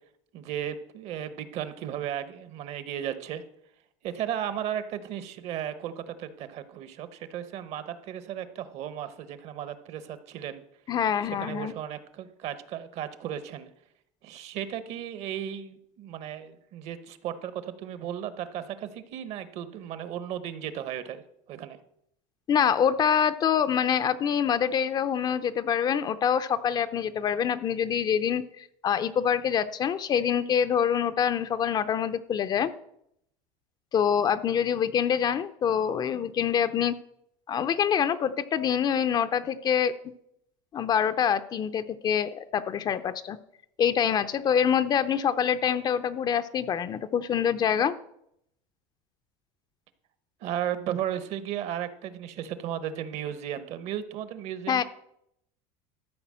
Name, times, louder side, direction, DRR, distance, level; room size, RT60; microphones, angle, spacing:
voice 1, 0.3-3.4 4.0-10.6 11.4-13.7 14.2-21.2 21.5-21.8 50.4-54.8, right 10 dB, 50° right, 13 dB, 1.0 m, -35 dB
voice 2, 10.9-11.7 22.5-32.7 33.9-36.9 37.5-40.0 40.7-43.4 43.8-47.9 54.7-54.8, left 8 dB, 30° left, 12 dB, 0.5 m, -25 dB
13.0 x 4.8 x 7.5 m, 0.75 s
cardioid pair, 140°, 14 cm